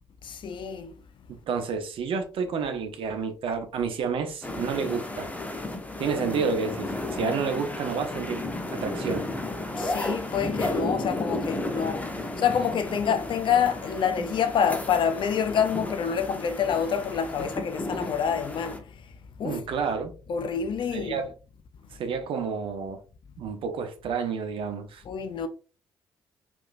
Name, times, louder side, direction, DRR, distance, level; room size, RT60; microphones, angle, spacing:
voice 1, 0.2-0.9 9.8-19.1 19.4-19.6 20.3-21.2 25.1-25.5, left 7 dB, 45° left, 0.7 m, -27 dB
voice 2, 1.5-5.3 6.0-8.4 8.7-9.3 19.4-20.1 20.9-21.3 22.0-23.0 23.4-25.0, right 5 dB, 50° right, 0.9 m, -30 dB
sound 1, 4.4-18.8, left 2 dB, 15° left, 0.9 m, -33 dB
4.8 x 3.5 x 2.6 m
figure-of-eight pair, 45°, 11 cm